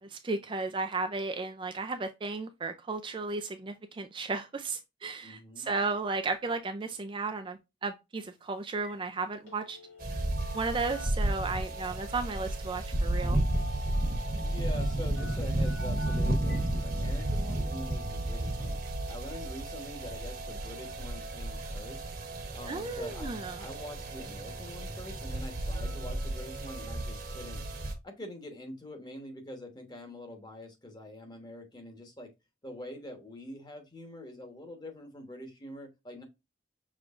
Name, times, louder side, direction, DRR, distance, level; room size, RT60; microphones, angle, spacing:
voice 1, 0.0-9.8 10.5-13.4 22.7-23.6, right 3 dB, 25° right, 0.4 m, -34 dB
voice 2, 5.2-5.7 14.4-18.8 19.1-22.1 22.5-23.3 23.6-27.6 28.0-32.3 32.6-36.2, left 1 dB, 20° left, 1.2 m, -45 dB
Telephone, 8.2-8.4 8.7-9.0 9.3-10.6 10.9-11.8 13.0-13.2 13.5-14.2 14.7-16.7 17.1-17.2 17.8-17.9, left 3 dB, 80° left, 2.2 m, -50 dB
sound 1, 10.0-27.9, right 1 dB, 50° right, 1.1 m, -33 dB
6.1 x 3.2 x 2.4 m
head